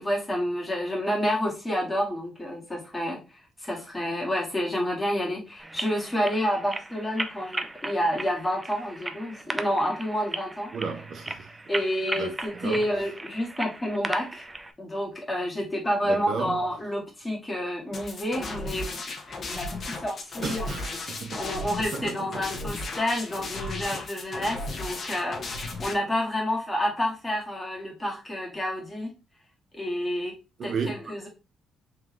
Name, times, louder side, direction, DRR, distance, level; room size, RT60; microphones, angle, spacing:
voice 1, 0.0-3.2 3.6-10.7 11.7-14.4 14.8-19.0 19.5-20.7 21.4-29.1 29.7-30.3 30.6-31.3, equal, 15° left, 1.8 m, -29 dB
sound 1, 5.6-14.7, right 2 dB, 15° right, 0.5 m, -37 dB
voice 2, 10.7-11.5 12.2-12.9 16.0-16.6 20.4-21.4 21.8-22.5 30.6-30.9, right 5 dB, 55° right, 0.7 m, -34 dB
sound 2, 17.9-25.9, left 2 dB, 45° left, 1.0 m, -35 dB
3.6 x 3.6 x 3.1 m
cardioid pair, 90°, 0 cm